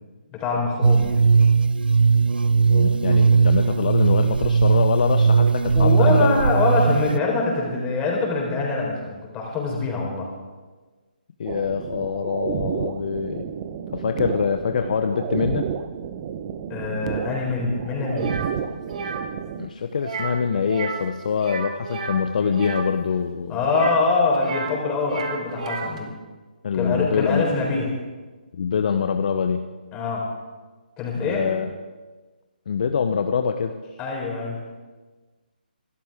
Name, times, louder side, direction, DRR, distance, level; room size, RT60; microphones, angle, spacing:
voice 1, 0.3-1.2 5.7-10.3 16.7-18.3 23.5-26.1 26.7-27.9 29.9-30.3 31.0-31.4 34.0-34.6, left 3 dB, 15° left, -1 dB, 4.2 m, -24 dB
sound 1, 0.8-7.2, right 5 dB, 75° right, 0.4 m, -18 dB
voice 2, 2.7-6.5 11.4-13.5 13.9-15.7 19.6-23.7 26.6-27.5 28.5-29.6 31.2-31.7 32.7-33.7, left 6 dB, 50° left, 7 dB, 0.9 m, -24 dB
sound 2, 11.5-19.7, right 8 dB, 30° right, 0.9 m, -31 dB
sound 3, 18.2-18.5 18.9-19.2 20.0-20.4 20.7-21.1 21.3-22.9 23.6-24.8 25.0-26.0, right 5 dB, 50° right, 2.4 m, -32 dB
26.5 x 13.0 x 3.6 m, 1.3 s
hypercardioid pair, 150°, 5 cm